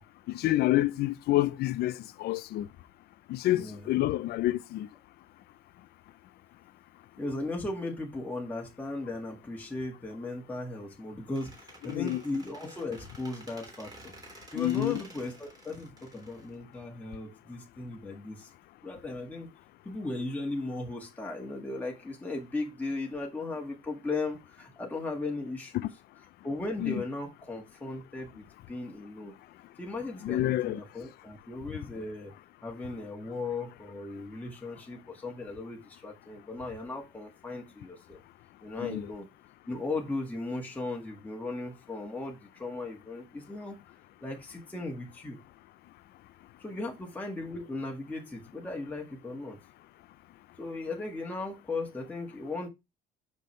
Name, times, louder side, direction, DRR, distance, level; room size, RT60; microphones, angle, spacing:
voice 1, 0.3-1.9 2.2-2.7 3.3-4.9 11.9-12.2 14.6-15.0 26.8-27.0 30.2-30.8 38.8-39.1, left 15 dB, 70° left, 0.5 m, -28 dB
voice 2, 3.5-4.0 7.2-13.9 14.5-18.5 18.8-19.5 19.8-25.9 26.4-29.3 29.8-32.3 32.6-38.2 38.6-39.3 39.7-43.8 44.2-45.4 46.6-49.6 50.6-52.7, left 2 dB, 10° left, 1.6 m, -37 dB
Squeak, 11.3-17.1, right 2 dB, 20° right, 3.3 m, -51 dB
6.0 x 5.3 x 3.1 m
cardioid pair, 110°, 17 cm